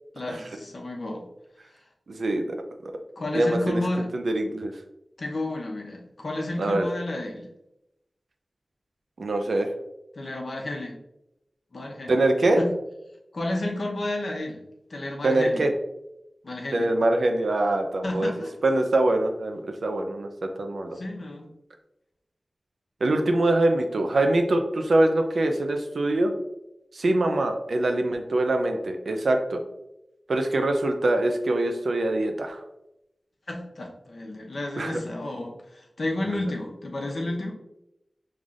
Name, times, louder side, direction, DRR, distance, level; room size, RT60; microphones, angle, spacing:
voice 1, 0.1-1.2 3.2-4.1 5.2-7.5 10.2-10.9 11.7-12.1 12.6-12.7 13.3-14.6 14.9-15.6 16.4-16.9 18.0-18.5 20.9-21.5 33.5-37.5, left 1 dB, 65° left, 0 dB, 0.9 m, -31 dB
voice 2, 2.1-2.6 2.8-2.9 3.3-3.8 4.1-4.7 6.6-6.9 9.2-9.7 12.1-12.6 15.2-15.7 16.7-18.3 18.6-21.0 23.0-26.3 26.9-29.6 30.3-32.6 34.8-35.0, right 2 dB, 80° right, 5 dB, 0.6 m, -24 dB
5.5 x 3.2 x 2.5 m, 0.88 s
wide cardioid pair, 65°, 0 cm